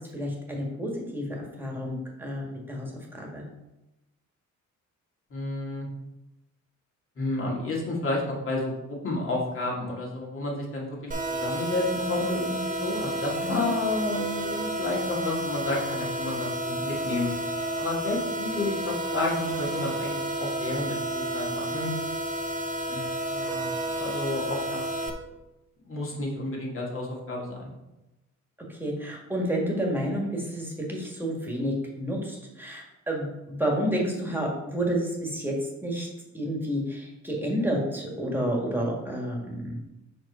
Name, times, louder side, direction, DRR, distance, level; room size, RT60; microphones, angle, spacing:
voice 1, 0.1-3.4 13.4-13.6 28.7-35.5 35.8-36.1 36.3-39.8, equal, 5° right, -1 dB, 1.7 m, -30 dB
voice 2, 5.3-5.9 7.2-17.3 17.8-21.9 22.9-24.9 25.8-27.7, left 2 dB, 45° left, -3 dB, 2.3 m, -31 dB
sound 1, 11.1-25.1, right 1 dB, 25° right, 0.9 m, -31 dB
6.0 x 5.0 x 4.3 m, 0.95 s
cardioid pair, 120°, 29 cm